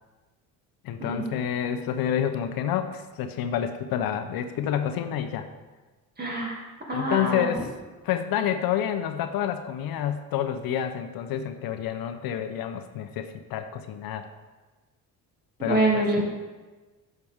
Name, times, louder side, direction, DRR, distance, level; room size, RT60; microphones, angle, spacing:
voice 1, 0.8-5.5 6.9-7.7 8.0-14.3 15.6-15.8 16.2-16.3, left 9 dB, 65° left, 8 dB, 0.7 m, -28 dB
voice 2, 6.2-6.6 6.9-7.5 15.6-16.2, right 2 dB, 25° right, -2 dB, 2.5 m, -25 dB
10.5 x 6.7 x 3.6 m, 1.3 s
cardioid pair, 95°, 38 cm